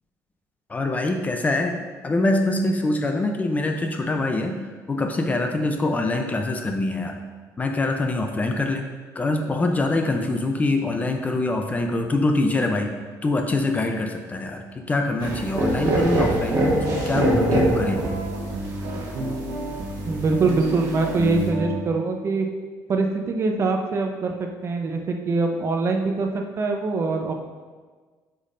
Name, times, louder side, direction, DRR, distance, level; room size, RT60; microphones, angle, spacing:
voice 1, 0.7-1.8 2.0-7.2 7.6-8.9 9.1-12.9 13.2-18.1, left 2 dB, 20° left, 4 dB, 0.5 m, -24 dB
sound 1, 15.2-21.5, right 1 dB, 55° right, 1.6 m, -25 dB
sound 2, 16.5-21.8, right 1 dB, 90° right, 1.0 m, -30 dB
voice 2, 20.1-22.5 22.9-27.3, right 3 dB, 35° right, 3 dB, 0.7 m, -23 dB
8.2 x 5.4 x 2.6 m, 1.4 s
cardioid pair, 130°, 7 cm